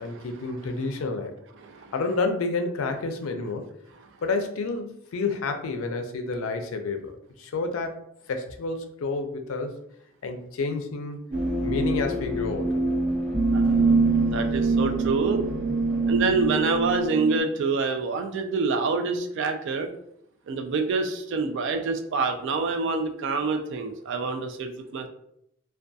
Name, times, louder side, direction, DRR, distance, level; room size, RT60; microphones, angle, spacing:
voice 1, 0.0-1.3 1.9-3.7 4.2-7.1 7.4-8.0 8.3-9.7 10.2-11.2 11.6-12.8, left 3 dB, 80° left, 6 dB, 0.4 m, -29 dB
voice 2, 1.6-1.9 4.0-4.1 13.5-14.0 14.3-15.4 16.1-19.9 20.5-25.1, right 4 dB, 60° right, 5 dB, 0.3 m, -27 dB
sound 1, 11.3-17.4, right 3 dB, 45° right, 1.0 m, -24 dB
2.3 x 2.2 x 2.6 m, 0.75 s
head